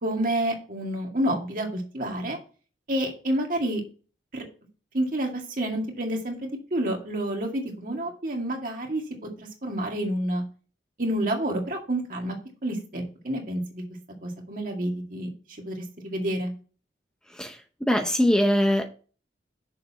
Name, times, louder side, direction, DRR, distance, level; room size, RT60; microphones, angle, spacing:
voice 1, 0.0-2.4 2.9-3.8 4.3-4.4 4.9-10.4 11.0-12.4 12.6-13.8 14.2-16.5, right 1 dB, 50° right, 2.1 m, -29 dB
voice 2, 17.9-18.8, equal, 5° left, 0.6 m, -21 dB
6.9 x 6.7 x 4.2 m
head